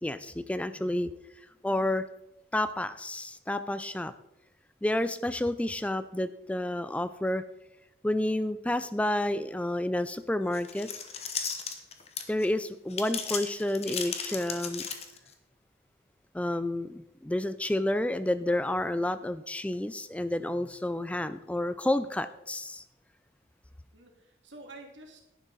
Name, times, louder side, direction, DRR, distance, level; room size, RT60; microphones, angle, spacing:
voice 1, 0.0-1.1 1.6-2.1 2.5-4.1 4.8-7.4 8.0-10.9 12.3-14.8 16.3-22.8, left 1 dB, 5° left, 13 dB, 0.3 m, -30 dB
voice 2, 0.6-1.0 23.9-25.2, right 2 dB, 90° right, 2 dB, 2.4 m, -50 dB
sound 1, 10.5-12.5 12.9-15.3, left 6 dB, 35° left, 1.1 m, -35 dB
11.0 x 10.0 x 4.1 m, 0.87 s
head